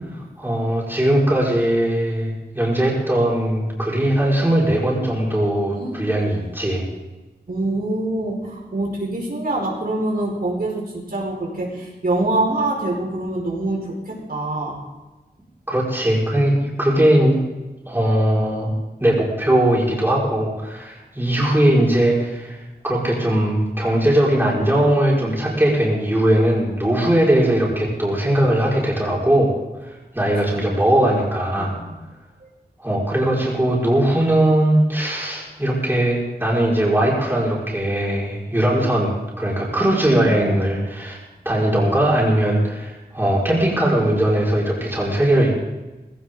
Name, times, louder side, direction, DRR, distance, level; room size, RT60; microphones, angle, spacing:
voice 1, 0.1-6.8 15.7-17.4 17.9-18.7 19.0-22.6 22.8-29.5 29.8-31.7 32.8-41.2 41.4-45.5, right 1 dB, 15° right, -5 dB, 5.1 m, -19 dB
voice 2, 7.5-14.8 30.5-30.6 31.5-32.0 32.4-32.5 40.2-40.6, right 2 dB, 60° right, -2 dB, 4.9 m, -25 dB
18.5 x 17.0 x 3.9 m, 1.1 s
wide cardioid pair, 95°, 17 cm